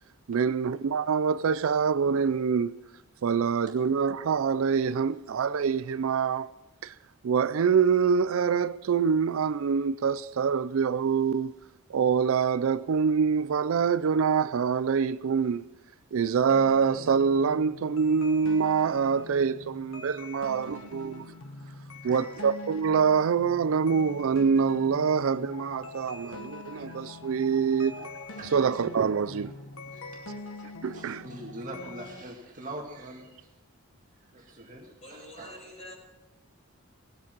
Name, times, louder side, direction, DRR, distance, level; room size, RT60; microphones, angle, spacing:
voice 1, 0.3-2.8 3.2-6.5 6.8-6.9 7.2-11.5 11.9-15.7 16.1-21.3 22.0-28.1 28.5-29.5 30.8-31.2, right 6 dB, 65° right, 0.4 m, -25 dB
sound 1, 16.5-32.2, left 2 dB, 65° left, 1.5 m, -44 dB
voice 2, 30.8-33.5 34.3-35.6, right 1 dB, 35° right, 2.1 m, -43 dB
voice 3, 35.0-35.9, left 1 dB, 30° left, 5.5 m, -47 dB
19.0 x 8.5 x 6.0 m
head